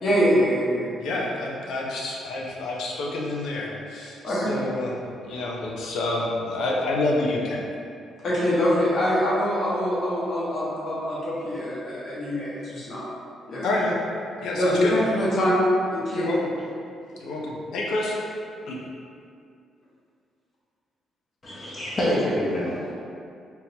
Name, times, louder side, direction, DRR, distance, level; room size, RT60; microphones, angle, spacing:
voice 1, 0.0-1.1 4.2-4.5 8.2-13.1 13.5-13.7 14.6-15.6 15.9-16.3, equal, 55° left, -8 dB, 1.2 m, -24 dB
voice 2, 1.0-7.6 13.6-14.0 14.4-14.9 16.1-16.5 17.2-18.2 18.7-18.8, left 2 dB, 80° left, -3 dB, 0.6 m, -28 dB
voice 3, 21.4-22.9, equal, 35° left, -7 dB, 0.8 m, -26 dB
3.7 x 2.8 x 2.8 m, 2.4 s
cardioid pair, 90°, 0 cm